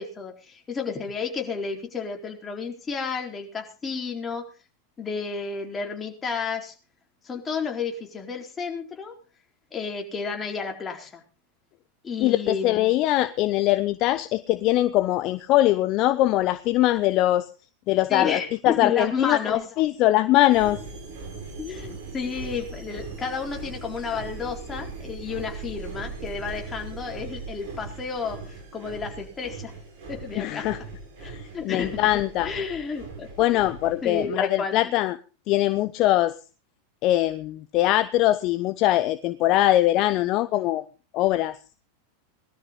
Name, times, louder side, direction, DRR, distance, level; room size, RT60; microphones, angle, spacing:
voice 1, 0.0-4.4 5.0-6.7 7.2-9.1 9.7-11.2 12.0-12.9 18.1-19.6 21.6-29.7 30.1-30.8 31.2-33.6 34.0-34.9, left 5 dB, 20° left, 2 dB, 4.2 m, -31 dB
voice 2, 12.2-17.5 17.9-20.8 30.4-30.8 31.3-32.5 33.4-35.1 35.5-36.4 37.0-40.8 41.1-41.6, left 15 dB, 45° left, 13 dB, 0.8 m, -22 dB
sound 1, 20.5-34.2, right 4 dB, 55° right, 7.0 m, -39 dB
20.0 x 13.0 x 3.9 m, 0.34 s
figure-of-eight pair, 90°, 0 cm